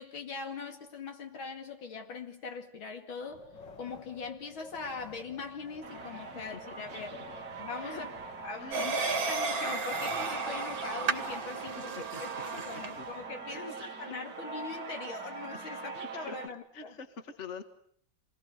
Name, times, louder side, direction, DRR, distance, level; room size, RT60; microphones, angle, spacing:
voice 1, 0.0-3.5 3.8-7.2 7.6-8.1 8.4-11.9 12.2-16.9, left 4 dB, 80° left, 3.2 m, -41 dB
Wind, 3.2-13.6, left 4 dB, 65° left, 2.9 m, -52 dB
sound 1, 5.8-16.5, right 4 dB, 50° right, 1.7 m, -43 dB
voice 2, 8.6-8.9 11.6-11.7 12.1-12.2 12.5-13.0 13.5-13.7 15.7-17.6, left 4 dB, 35° left, 1.9 m, -45 dB
sound 2, 8.7-13.0, right 4 dB, 75° right, 2.8 m, -33 dB
27.5 x 21.0 x 8.1 m
omnidirectional pair, 2.2 m